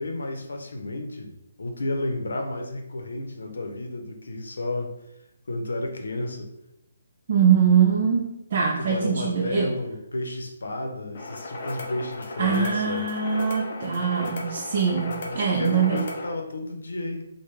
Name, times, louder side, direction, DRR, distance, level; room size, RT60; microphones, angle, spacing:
voice 1, 0.0-1.3 1.6-4.9 5.5-6.5 8.8-13.1 15.2-17.3, left 2 dB, 80° left, 4 dB, 0.7 m, -32 dB
voice 2, 7.3-9.7 12.4-16.1, right 7 dB, 40° right, -2 dB, 0.4 m, -23 dB
sound 1, 11.1-16.3, left 2 dB, 45° left, 0.6 m, -35 dB
3.3 x 2.1 x 3.2 m, 0.85 s
hypercardioid pair, 165°, 0 cm